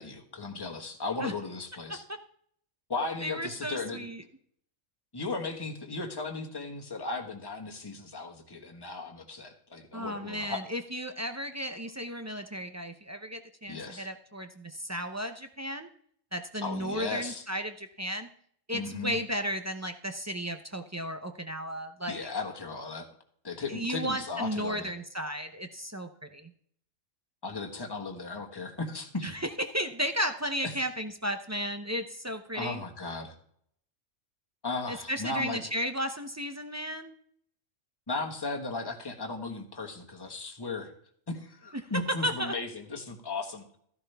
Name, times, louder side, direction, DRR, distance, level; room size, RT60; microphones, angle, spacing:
voice 1, 0.0-2.0 2.9-4.0 5.1-10.6 13.7-14.1 16.6-17.4 18.7-19.2 22.1-23.1 23.4-24.9 27.4-29.3 30.6-30.7 32.5-33.3 34.6-35.6 38.1-40.9 41.3-43.6, left 3 dB, 15° left, 1 dB, 1.4 m, -36 dB
voice 2, 3.2-4.2 9.9-15.9 16.3-18.3 18.7-22.3 23.7-26.5 29.2-32.8 34.9-37.1 42.2-42.5, equal, 25° right, 7 dB, 0.3 m, -34 dB
14.5 x 11.0 x 3.4 m, 0.63 s
omnidirectional pair, 1.5 m